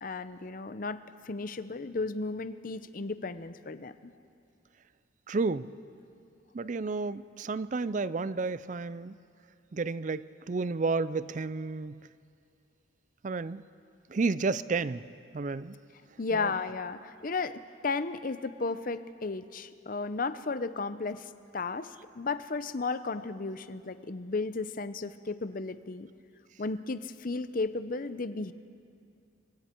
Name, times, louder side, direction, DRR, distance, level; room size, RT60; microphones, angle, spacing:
voice 1, 0.0-1.0 1.2-4.1 16.2-26.1 26.6-28.5, left 3 dB, 45° left, 12 dB, 0.6 m, -34 dB
voice 2, 5.3-5.7 6.5-9.1 9.7-12.0 13.2-13.6 14.1-15.0 15.3-15.8 16.4-16.5, right 4 dB, 40° right, 16 dB, 0.4 m, -31 dB
26.0 x 22.5 x 4.5 m, 2.4 s
head